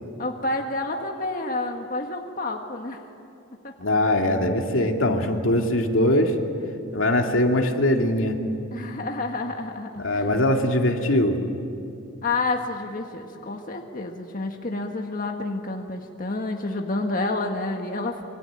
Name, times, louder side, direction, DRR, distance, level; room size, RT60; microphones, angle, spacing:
voice 1, 0.2-3.0 3.6-3.7 8.7-10.2 12.2-18.2, left 2 dB, 45° left, 2 dB, 1.6 m, -29 dB
voice 2, 3.8-6.4 6.9-8.4 10.0-11.4, left 1 dB, 80° left, 3 dB, 2.5 m, -21 dB
26.5 x 25.0 x 8.9 m, 2.7 s
head